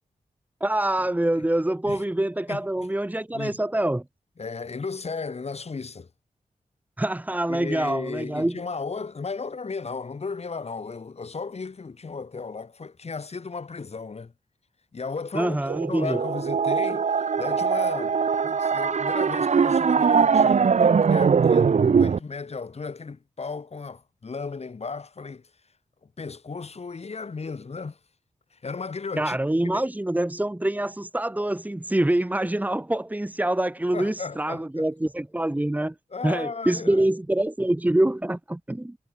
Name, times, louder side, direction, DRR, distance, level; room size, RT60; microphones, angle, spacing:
voice 1, 0.6-4.0 7.0-8.6 15.3-16.2 29.2-35.9 36.2-39.0, right 1 dB, 10° right, 2.5 m, -25 dB
voice 2, 2.5-2.9 3.3-3.5 4.4-6.1 7.5-14.3 14.9-15.6 15.9-18.2 18.4-25.5 26.2-28.0 28.5-29.4 29.6-29.8 33.9-34.9 36.1-37.1, left 4 dB, 50° left, 6.8 m, -35 dB
sound 1, 15.7-22.2, right 6 dB, 60° right, 1.1 m, -21 dB
wide cardioid pair, 115°, 14 cm